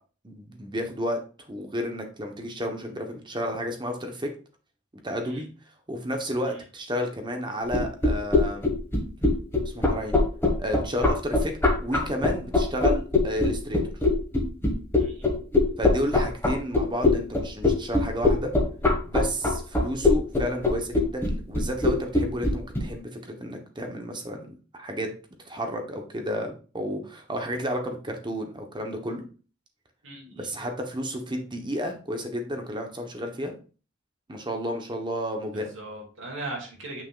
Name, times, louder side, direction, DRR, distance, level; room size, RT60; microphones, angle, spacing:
voice 1, 0.2-1.2 1.5-4.3 5.0-5.5 5.9-8.6 9.6-10.2 10.6-13.8 15.8-18.5 19.0-25.1 25.4-29.2 30.3-33.5 34.3-35.7, equal, 25° right, 4 dB, 1.1 m, -32 dB
sound 1, 7.7-22.8, left 3 dB, 10° left, 1.6 m, -21 dB
voice 2, 15.0-15.4 30.0-30.5 35.5-37.0, right 2 dB, 70° right, -1 dB, 2.4 m, -39 dB
7.6 x 6.0 x 2.5 m, 0.37 s
head